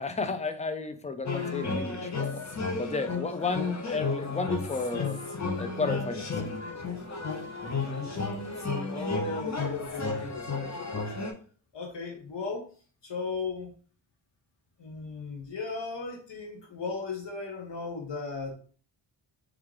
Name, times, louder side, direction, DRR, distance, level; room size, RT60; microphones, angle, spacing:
voice 1, 0.0-2.4 2.8-5.2 5.6-6.4, left 4 dB, 15° left, 8 dB, 0.6 m, -32 dB
sound 1, 1.3-11.3, left 4 dB, 40° left, 1.1 m, -33 dB
voice 2, 8.9-11.3 11.7-12.7 13.0-13.7 14.8-18.5, left 4 dB, 65° left, 0 dB, 1.2 m, -36 dB
3.6 x 3.4 x 3.2 m, 0.42 s
cardioid pair, 50°, 45 cm